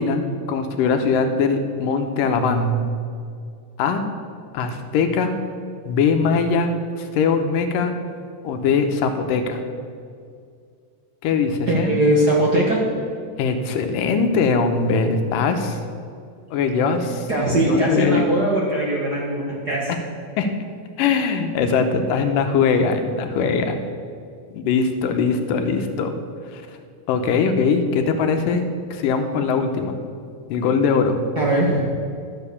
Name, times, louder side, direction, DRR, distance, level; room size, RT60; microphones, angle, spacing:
voice 1, 0.0-2.8 3.8-4.0 4.5-5.3 5.9-7.9 8.4-9.6 11.2-12.0 13.4-15.8 16.5-17.3 17.5-18.2 20.4-20.5 21.0-23.8 24.5-26.2 26.5-26.6 27.1-30.0 30.5-31.2, left 5 dB, 85° left, 6 dB, 2.5 m, -21 dB
voice 2, 11.7-12.8 17.3-19.9 31.3-31.8, right 1 dB, 45° right, -4 dB, 1.3 m, -20 dB
12.0 x 7.8 x 6.9 m, 2.3 s
omnidirectional pair, 3.8 m